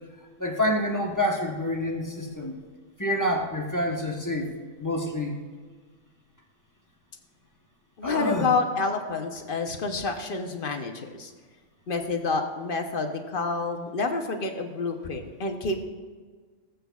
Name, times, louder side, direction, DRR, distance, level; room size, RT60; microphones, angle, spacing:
voice 1, 0.4-2.5 3.0-4.5 4.8-5.4 8.0-8.5, left 1 dB, 15° left, 0 dB, 1.0 m, -27 dB
voice 2, 8.0-11.3 11.9-15.8, left 4 dB, 50° left, 5 dB, 0.9 m, -28 dB
18.0 x 8.0 x 2.4 m, 1.5 s
omnidirectional pair, 1.3 m